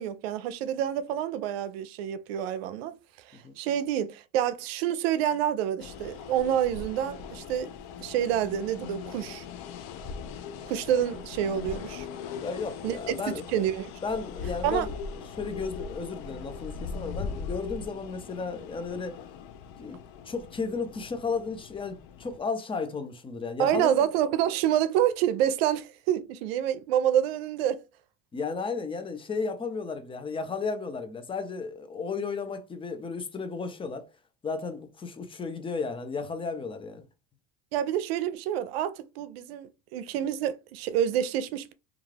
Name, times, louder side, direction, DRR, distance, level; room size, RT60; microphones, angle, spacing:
voice 1, 0.0-2.9 3.2-7.7 8.0-9.4 10.7-12.1 12.8-13.0 13.3-13.9 14.6-14.9 23.6-27.8 37.7-41.7, right 10 dB, 85° right, 0.5 m, -28 dB
sound 1, 5.8-22.4, left 5 dB, 65° left, 0.5 m, -40 dB
voice 2, 12.4-13.4 14.0-14.9 15.4-19.2 19.8-20.0 20.2-23.9 28.3-34.1 34.4-37.0, left 4 dB, 20° left, 0.5 m, -34 dB
2.4 x 2.3 x 3.2 m
supercardioid pair, 110°, 30 cm